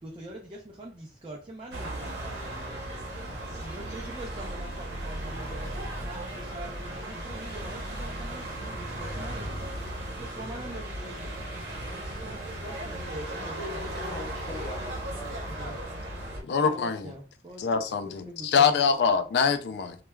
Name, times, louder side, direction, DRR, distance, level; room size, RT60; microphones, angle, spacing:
voice 1, 0.0-5.7 6.0-9.7 10.2-11.5 11.8-14.2 15.5-15.8 16.6-18.8, right 1 dB, 30° right, -2 dB, 0.5 m, -44 dB
sound 1, 1.7-16.4, right 1 dB, 75° right, 0.8 m, -36 dB
voice 2, 13.9-16.6, equal, 30° left, -5 dB, 0.9 m, -44 dB
voice 3, 16.5-17.1 17.6-20.0, left 6 dB, 75° left, 9 dB, 0.4 m, -24 dB
3.1 x 2.2 x 2.2 m, 0.36 s
head